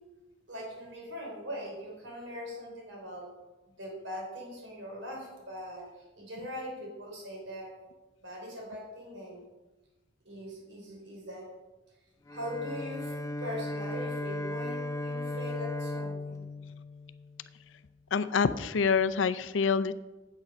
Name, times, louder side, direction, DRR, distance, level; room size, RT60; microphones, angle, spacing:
voice 1, 0.5-3.3 3.8-7.7 8.2-9.4 10.3-11.5 12.3-16.5, equal, 75° right, -1 dB, 3.7 m, -41 dB
Bowed string instrument, 12.3-17.7, left 2 dB, 15° left, 0.4 m, -36 dB
voice 2, 18.1-19.9, left 5 dB, 90° left, 13 dB, 0.5 m, -26 dB
9.1 x 8.4 x 5.3 m, 1.1 s
head